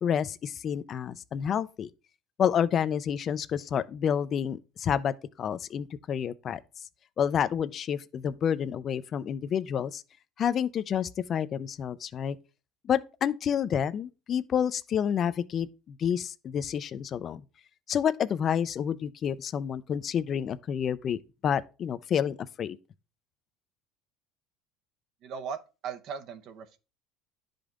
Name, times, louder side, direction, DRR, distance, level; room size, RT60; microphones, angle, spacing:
voice 1, 0.0-1.9 2.4-6.6 7.2-10.0 10.4-12.4 12.9-17.4 17.9-22.8, left 8 dB, 35° left, 0.5 m, -29 dB
voice 2, 25.2-26.8, right 6 dB, 55° right, 0.8 m, -38 dB
10.5 x 5.1 x 3.7 m
cardioid pair, 135°, 0 cm